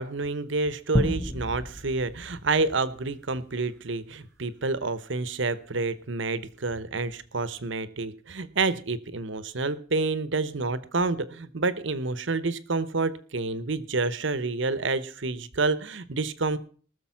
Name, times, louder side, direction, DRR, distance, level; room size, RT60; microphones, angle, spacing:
voice 1, 0.0-16.6, right 3 dB, 60° right, 15 dB, 0.9 m, -28 dB
sound 1, 0.9-3.8, left 1 dB, 15° left, 0.5 m, -32 dB
19.5 x 6.8 x 5.7 m, 0.42 s
head